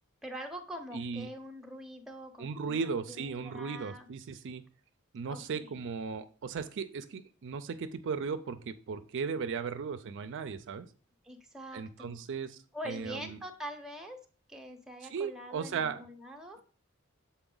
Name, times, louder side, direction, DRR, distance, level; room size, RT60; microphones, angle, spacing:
voice 1, 0.2-4.1 5.2-5.8 11.2-12.2 12.7-14.2 14.5-16.6, equal, ahead, 3 dB, 0.8 m, -44 dB
voice 2, 0.9-1.3 2.4-4.6 5.1-10.9 11.7-12.6 12.8-13.4 15.1-16.1, right 5 dB, 60° right, 10 dB, 0.4 m, -36 dB
7.0 x 4.1 x 3.8 m, 0.39 s
head